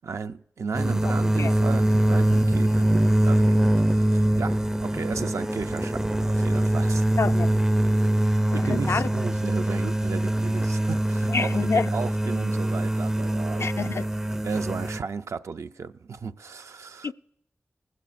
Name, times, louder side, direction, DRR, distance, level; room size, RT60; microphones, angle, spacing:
voice 1, 0.0-7.1 8.5-14.0 14.4-17.1, right 5 dB, 75° right, 0.4 m, -34 dB
sound 1, 0.7-15.0, right 1 dB, 10° right, 0.4 m, -23 dB
voice 2, 7.2-7.5 8.5-9.1 11.3-11.9 13.6-14.1 17.0-17.1, left 5 dB, 65° left, 0.4 m, -27 dB
19.0 x 15.5 x 2.5 m
cardioid pair, 50°, 5 cm